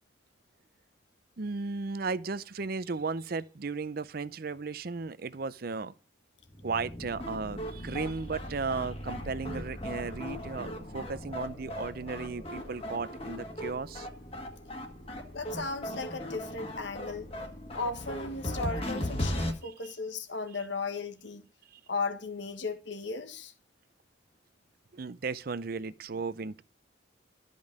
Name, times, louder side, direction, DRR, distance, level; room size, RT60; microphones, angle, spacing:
voice 1, 1.4-5.9 6.6-14.1 19.6-19.9 21.7-21.8 24.9-26.6, right 4 dB, 50° right, 0.5 m, -35 dB
sound 1, 6.5-19.5, left 1 dB, 30° left, 1.8 m, -38 dB
voice 2, 15.3-17.3 17.7-21.4 21.9-23.5, left 3 dB, 70° left, 1.4 m, -36 dB
13.0 x 5.4 x 6.4 m
head